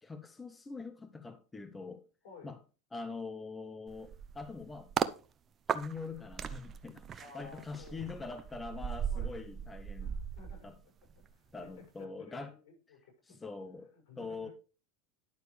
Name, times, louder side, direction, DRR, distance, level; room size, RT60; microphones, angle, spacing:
voice 1, 0.0-2.0 2.4-2.6 2.9-4.9 5.7-10.2 10.6-10.8 11.5-12.5 13.3-13.9 14.2-14.5, left 4 dB, 15° left, 0.7 m, -43 dB
voice 2, 2.2-2.6 7.2-8.2 9.1-9.4 10.0-10.7 11.0-14.5, left 4 dB, 70° left, 5.8 m, -55 dB
sound 1, 3.9-5.2 5.7-11.3 11.6-11.8, right 8 dB, 30° right, 0.6 m, -38 dB
10.5 x 6.7 x 3.2 m
supercardioid pair, 125°, 0 cm